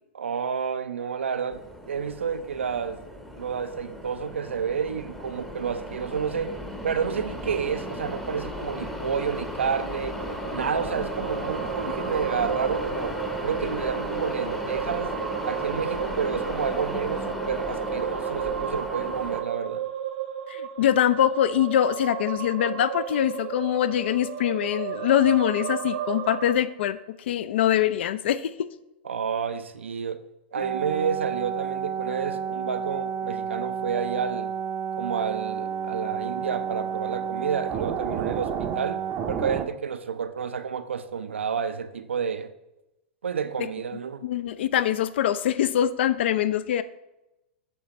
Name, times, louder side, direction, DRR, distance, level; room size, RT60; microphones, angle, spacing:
voice 1, 0.1-3.0 3.3-6.6 6.8-10.2 10.5-15.1 15.4-19.9 29.0-30.2 30.5-34.5 35.0-42.5 43.2-44.2, right 6 dB, 90° right, 0.4 m, -30 dB
sound 1, 1.5-19.4, left 1 dB, 5° left, 0.7 m, -35 dB
sound 2, 10.2-26.5, right 9 dB, 65° right, 0.8 m, -33 dB
voice 2, 20.5-27.0 27.3-28.7 43.6-43.7 44.2-46.8, left 11 dB, 70° left, 0.4 m, -23 dB
sound 3, 30.6-39.7, right 7 dB, 35° right, 0.5 m, -30 dB
7.1 x 3.5 x 4.2 m
hypercardioid pair, 110°, 6 cm